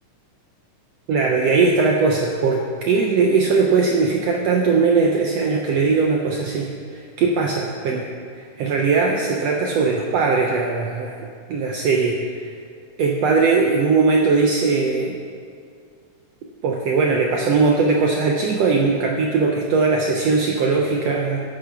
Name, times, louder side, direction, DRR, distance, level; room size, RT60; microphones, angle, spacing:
voice 1, 1.1-8.0 8.4-12.2 12.4-12.5 13.0-15.2 16.6-21.4, right 4 dB, 80° right, 1 dB, 1.5 m, -19 dB
13.0 x 10.5 x 3.5 m, 2.2 s
omnidirectional pair, 3.7 m